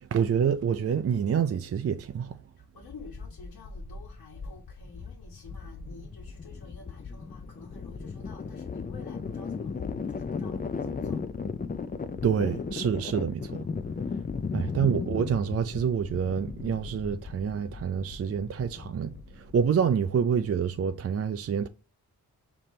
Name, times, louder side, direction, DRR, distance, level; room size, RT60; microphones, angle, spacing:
voice 1, 0.1-2.4 12.2-13.6 14.5-19.1 19.5-21.7, right 7 dB, 40° right, 0.4 m, -27 dB
voice 2, 2.7-11.2 14.2-14.7, left 4 dB, 60° left, 1.4 m, -50 dB
sound 1, 2.8-19.9, left 5 dB, 20° left, 0.4 m, -36 dB
5.0 x 3.0 x 3.1 m
cardioid pair, 50°, 40 cm